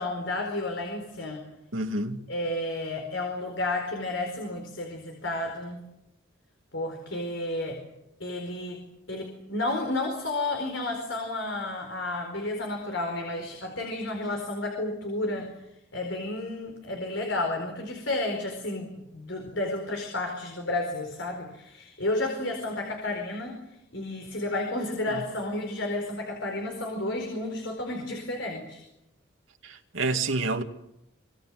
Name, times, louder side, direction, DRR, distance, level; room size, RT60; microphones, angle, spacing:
voice 1, 0.0-1.4 2.3-5.8 6.7-7.8 8.2-8.8 9.1-15.5 15.9-23.6 23.9-28.8, left 2 dB, 70° left, 4.6 m, -31 dB
voice 2, 1.7-2.2 25.1-25.2 29.6-30.6, right 2 dB, 75° right, 2.2 m, -28 dB
25.5 x 24.5 x 7.7 m
head